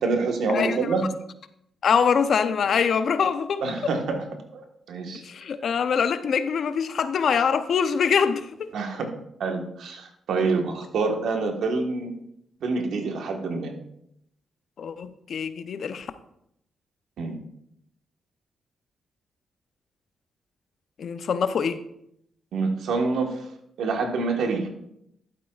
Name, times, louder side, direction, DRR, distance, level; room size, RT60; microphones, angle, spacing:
voice 1, 0.0-1.1 3.6-4.2 4.5-5.2 8.7-9.1 9.4-12.1 12.6-13.7 17.2-17.4 22.5-23.4 23.8-24.7, right 3 dB, 80° right, 1.4 m, -26 dB
voice 2, 1.8-3.7 5.2-8.7 14.8-16.1 21.0-21.8, left 6 dB, 65° left, 0.6 m, -24 dB
11.5 x 9.0 x 2.4 m
cardioid pair, 65°, 0 cm